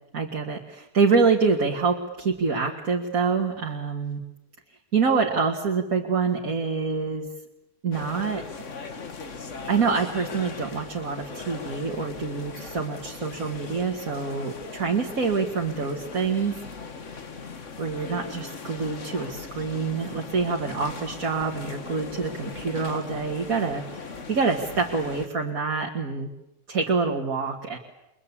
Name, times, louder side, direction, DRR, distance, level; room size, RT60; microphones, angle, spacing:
voice 1, 0.1-4.2 4.9-7.3 7.8-8.4 9.7-16.6 17.8-24.0 24.3-26.3 26.7-27.8, right 5 dB, 70° right, 0 dB, 2.5 m, -26 dB
sound 1, 7.9-25.3, left 4 dB, 55° left, 2.0 m, -39 dB
29.5 x 22.5 x 8.5 m, 0.92 s
omnidirectional pair, 1.5 m